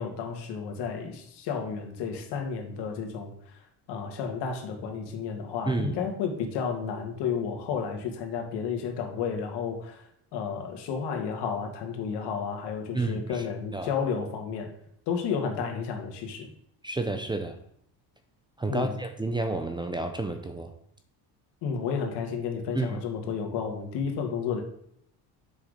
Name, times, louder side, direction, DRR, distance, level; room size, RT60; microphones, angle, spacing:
voice 1, 0.0-3.3 3.9-14.7 15.1-16.5 18.7-19.0 21.6-24.6, left 6 dB, 70° left, 3 dB, 2.1 m, -32 dB
voice 2, 5.7-6.0 12.9-13.4 13.7-13.9 16.8-17.6 18.6-20.7 22.7-23.0, right 2 dB, 10° right, 7 dB, 0.6 m, -30 dB
7.5 x 6.3 x 5.2 m, 0.71 s
cardioid pair, 150°, 42 cm